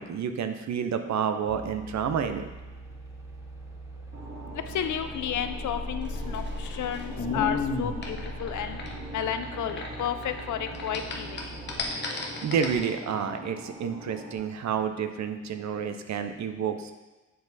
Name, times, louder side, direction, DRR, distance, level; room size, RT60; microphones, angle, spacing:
voice 1, 0.0-2.5 12.4-16.9, right 7 dB, 70° right, 8 dB, 0.6 m, -29 dB
sound 1, 1.5-11.8, equal, 10° right, 0.8 m, -40 dB
sound 2, 4.1-14.4, right 1 dB, 50° right, 2.0 m, -43 dB
voice 2, 4.7-8.8 9.1-11.4, left 9 dB, 80° left, 9 dB, 0.6 m, -32 dB
sound 3, 6.1-10.4 10.7-12.8, left 4 dB, 40° left, 0.9 m, -33 dB
7.5 x 4.7 x 4.0 m, 1.1 s
wide cardioid pair, 175°, 29 cm